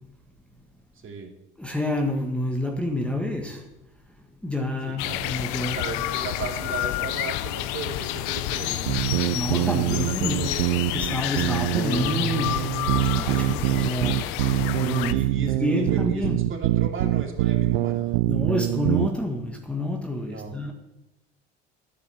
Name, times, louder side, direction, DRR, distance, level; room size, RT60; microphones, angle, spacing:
voice 1, 1.6-3.7 4.4-5.8 9.3-10.5 10.9-14.5 14.8-16.4 18.3-20.7, left 1 dB, 5° left, 0 dB, 1.7 m, -28 dB
voice 2, 4.8-5.3 5.6-9.0 9.8-10.7 13.3-13.6 15.1-18.0 20.1-20.6, right 5 dB, 40° right, 2 dB, 2.9 m, -36 dB
sound 1, 5.0-15.1, left 15 dB, 65° left, 0.7 m, -29 dB
sound 2, 8.9-19.1, right 16 dB, 75° right, 0.6 m, -24 dB
10.5 x 8.1 x 7.0 m, 0.93 s
hypercardioid pair, 70°, 33 cm